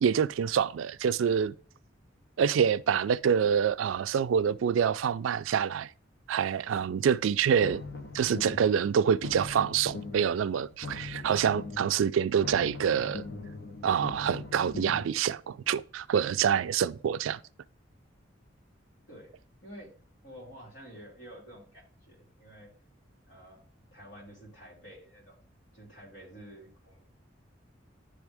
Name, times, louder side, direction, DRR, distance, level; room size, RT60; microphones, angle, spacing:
voice 1, 0.0-1.5 2.4-5.9 6.3-7.8 8.1-13.3 13.8-17.4, right 7 dB, 90° right, 0.3 m, -26 dB
sound 1, 7.6-8.8 9.1-10.4 10.7-12.0 12.3-15.1, left 3 dB, 55° left, 0.8 m, -41 dB
voice 2, 19.6-19.9 20.2-22.7 23.3-23.6 23.9-25.4 25.7-27.1, equal, 75° left, 3.2 m, -49 dB
10.0 x 3.5 x 3.4 m
head